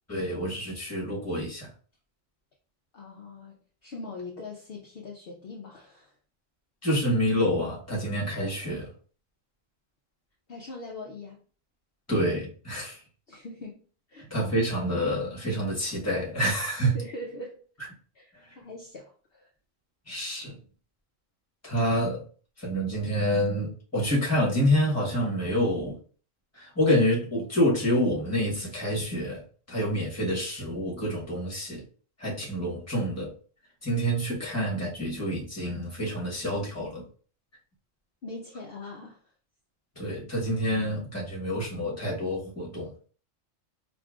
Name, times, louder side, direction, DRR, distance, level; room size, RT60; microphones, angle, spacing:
voice 1, 0.1-1.7 6.8-8.9 12.1-13.0 14.3-16.9 20.1-20.6 21.6-22.2 22.6-26.0 26.5-31.8 32.2-33.3 33.8-37.0 40.0-42.9, equal, 15° left, 1.1 m, -27 dB
voice 2, 2.9-6.1 10.5-11.4 13.3-13.8 14.1-14.3 16.9-17.6 18.1-18.3 18.6-19.5 38.2-39.2, left 2 dB, 60° left, 0.7 m, -41 dB
5.0 x 2.5 x 2.4 m
omnidirectional pair, 1.3 m